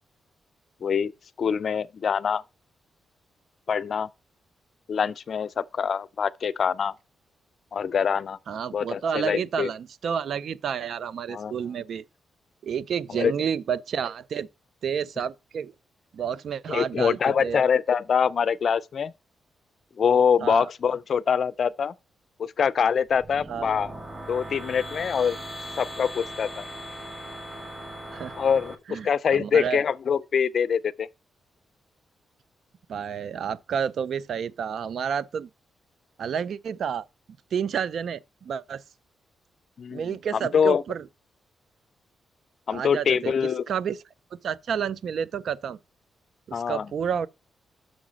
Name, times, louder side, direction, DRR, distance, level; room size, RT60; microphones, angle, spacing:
voice 1, 0.8-1.1 1.4-2.4 3.7-4.1 4.9-6.9 7.7-8.4 8.7-9.7 11.3-11.5 13.1-13.3 16.7-19.1 20.0-21.9 22.4-23.9 24.3-25.4 25.8-26.7 28.4-31.1 39.8-40.8 42.7-43.6 46.5-46.9, left 7 dB, 60° left, 0.4 m, -24 dB
voice 2, 8.5-12.0 12.6-14.5 14.8-15.7 16.1-17.6 20.4-20.7 23.5-23.7 28.1-28.3 28.9-29.8 32.9-35.5 36.2-37.0 37.5-38.8 39.9-41.0 42.7-44.0 44.4-45.8 46.5-47.3, right 7 dB, 70° right, 0.4 m, -30 dB
sound 1, 23.0-28.8, equal, 20° right, 1.4 m, -39 dB
6.3 x 4.8 x 6.2 m
cardioid pair, 65°, 0 cm